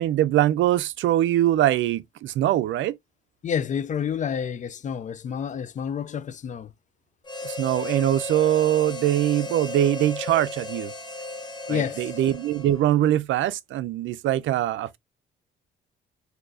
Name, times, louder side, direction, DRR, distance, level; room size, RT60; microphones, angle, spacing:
voice 1, 0.0-3.0 7.4-10.9 11.7-15.0, right 13 dB, 75° right, 0.5 m, -23 dB
voice 2, 3.4-6.7 11.7-12.2, left 8 dB, 40° left, 0.4 m, -29 dB
Harmonica, 7.2-13.0, left 2 dB, 20° left, 0.8 m, -35 dB
3.9 x 2.7 x 2.5 m
cardioid pair, 90°, 20 cm